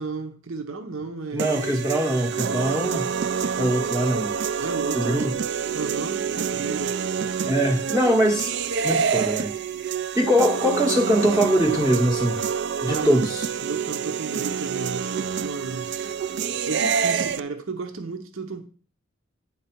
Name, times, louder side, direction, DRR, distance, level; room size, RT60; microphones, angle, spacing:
voice 1, 0.0-1.7 4.6-5.3 5.7-7.0 12.8-13.3 13.6-15.1 15.4-15.9 16.7-18.7, right 4 dB, 85° right, 0.9 m, -33 dB
voice 2, 1.3-3.1 3.6-4.3 4.9-5.3 7.5-8.6 8.8-9.5 10.1-12.4 12.8-13.5, equal, 15° right, 0.8 m, -22 dB
sound 1, 1.4-17.4, right 6 dB, 55° right, 0.4 m, -27 dB
9.5 x 4.0 x 5.8 m
head